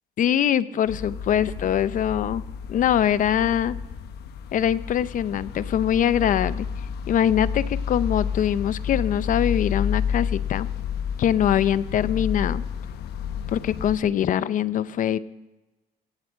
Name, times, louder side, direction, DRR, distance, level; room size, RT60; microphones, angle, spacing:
voice 1, 0.2-2.4 2.7-3.8 4.5-6.7 7.1-10.7 11.2-12.6 13.5-15.2, left 10 dB, 50° left, 17 dB, 0.6 m, -23 dB
sound 1, 0.9-14.0, left 7 dB, 70° left, 1.0 m, -30 dB
16.5 x 7.9 x 8.0 m, 1.1 s
cardioid pair, 110°, 17 cm